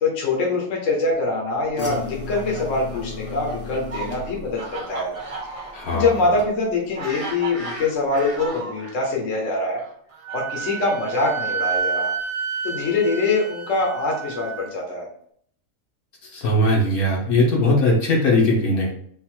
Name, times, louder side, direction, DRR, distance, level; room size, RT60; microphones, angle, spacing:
voice 1, 0.0-5.1 5.6-9.8 10.3-12.1 12.6-15.1, left 3 dB, 60° left, -2 dB, 1.3 m, -24 dB
sound 1, 1.8-7.0 7.3-7.7 8.1-8.2, left 3 dB, 35° left, 0.9 m, -35 dB
Fowl, 2.0-9.0 9.8-11.8, right 3 dB, 30° right, 0.7 m, -36 dB
voice 2, 5.7-6.1 16.3-18.9, left 1 dB, 75° left, -2 dB, 1.6 m, -19 dB
Wind instrument woodwind instrument, 10.2-14.7, right 6 dB, 5° right, 1.0 m, -29 dB
3.9 x 2.6 x 4.3 m, 0.64 s
omnidirectional pair, 1.6 m